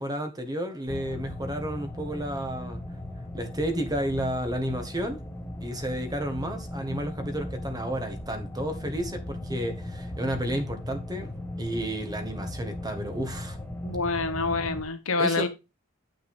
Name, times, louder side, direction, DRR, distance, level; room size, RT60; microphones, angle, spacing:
voice 1, 0.0-2.8 3.3-5.2 5.6-11.3 11.6-13.6 15.2-15.5, right 1 dB, 20° right, 1.5 m, -31 dB
sound 1, 0.9-14.8, left 1 dB, 10° left, 1.8 m, -37 dB
voice 2, 13.8-15.5, left 3 dB, 80° left, 1.4 m, -27 dB
9.8 x 5.9 x 3.5 m
head